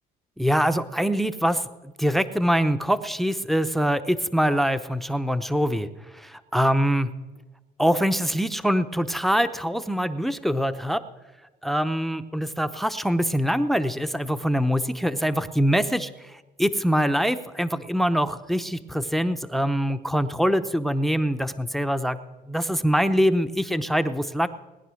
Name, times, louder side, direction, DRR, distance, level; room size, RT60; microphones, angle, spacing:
voice 1, 0.4-1.6 2.0-5.9 6.2-7.1 7.8-11.0 11.6-16.1 16.6-22.2 22.5-24.5, equal, ahead, 12 dB, 0.7 m, -24 dB
20.0 x 10.0 x 6.3 m, 1.2 s
cardioid pair, 110°, 17 cm